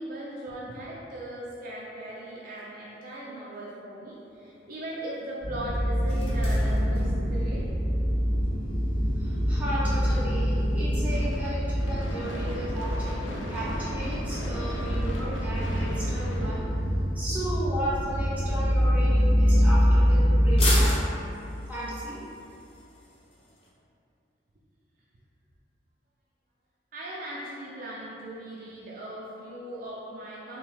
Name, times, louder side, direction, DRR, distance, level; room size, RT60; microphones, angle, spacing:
voice 1, 0.0-7.7 26.9-30.6, right 1 dB, 45° right, -6 dB, 0.3 m, -38 dB
sound 1, 4.1-23.7, left 1 dB, 30° left, 0.5 m, -41 dB
sound 2, 5.4-20.8, equal, 50° left, 1.5 m, -25 dB
voice 2, 9.2-16.7 17.1-20.9 21.7-22.2, equal, 10° right, -10 dB, 0.7 m, -35 dB
Gunshot gunfire / Fireworks, 11.1-17.4, left 1 dB, 85° left, 0.4 m, -38 dB
3.0 x 2.2 x 3.1 m, 2.6 s
head